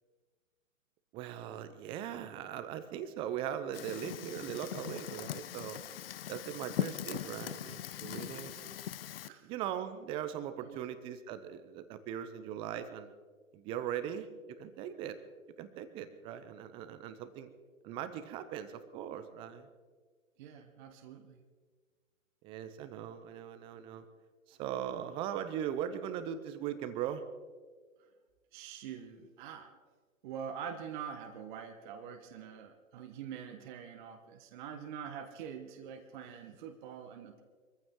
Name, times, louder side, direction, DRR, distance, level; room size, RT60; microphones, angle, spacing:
voice 1, 1.1-5.8 6.3-8.7 9.4-13.1 13.5-15.2 15.6-17.5 17.8-19.7 22.4-24.0 24.5-27.2, right 10 dB, 15° right, 11 dB, 0.6 m, -40 dB
Fire, 3.7-9.3, left 11 dB, 45° left, 0.5 m, -40 dB
voice 2, 20.4-21.4 28.5-29.8 30.2-37.4, right 7 dB, 35° right, 5 dB, 1.3 m, -45 dB
23.0 x 14.5 x 3.7 m, 1.5 s
hypercardioid pair, 130°, 42 cm